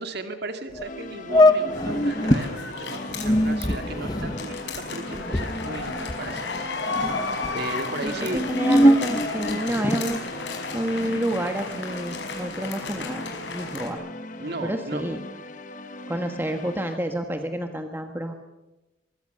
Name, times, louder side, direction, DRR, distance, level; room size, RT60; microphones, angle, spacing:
voice 1, 0.0-6.5 7.5-8.5 9.6-9.8 14.4-15.0, right 2 dB, 50° right, 7 dB, 2.3 m, -35 dB
sound 1, 0.7-0.8 1.3-2.5 3.1-6.6 6.9-7.5 8.2-10.2, left 1 dB, 20° left, 1.0 m, -22 dB
sound 2, 0.8-17.0, left 2 dB, 40° left, 1.4 m, -40 dB
sound 3, 1.7-13.9, left 3 dB, 55° left, 5.2 m, -33 dB
voice 2, 8.0-10.2 10.7-13.2 13.5-14.0 14.6-15.2 16.1-18.3, right 1 dB, 10° right, 5 dB, 1.4 m, -29 dB
23.5 x 23.0 x 6.7 m, 1.1 s
head